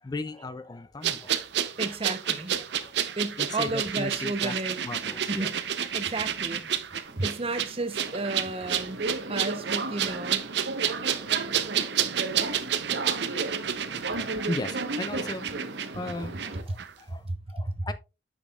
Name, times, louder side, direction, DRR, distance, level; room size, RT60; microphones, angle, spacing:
voice 1, 0.0-1.7 2.5-4.5 4.8-5.5 5.8-5.9 14.1-17.9, left 2 dB, 20° left, 0.4 m, -37 dB
sound 1, 1.0-16.5 16.8-16.9, right 9 dB, 70° right, 0.6 m, -30 dB
voice 2, 1.8-2.6 3.2-4.8 5.3-9.0 9.3-10.4 16.7-16.8 17.1-17.9, right 2 dB, 35° right, 0.7 m, -33 dB
Subway metro underground, 7.0-16.6, right 2 dB, 90° right, 1.0 m, -35 dB
8.6 x 6.2 x 2.3 m
head